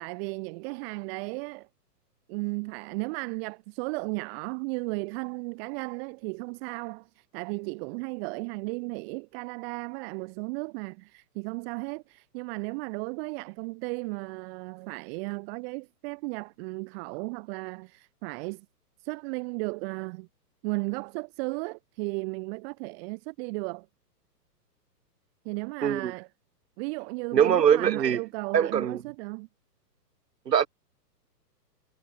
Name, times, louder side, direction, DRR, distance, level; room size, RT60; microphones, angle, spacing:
voice 1, 0.0-1.7 2.3-18.7 19.0-20.3 20.6-23.9 25.4-26.3 26.8-29.5, right 31 dB, 35° right, 7.2 m, -35 dB
voice 2, 25.8-26.1 27.3-28.2 28.5-29.0 30.5-30.7, right 8 dB, 75° right, 4.4 m, -22 dB
hypercardioid pair, 140°, 49 cm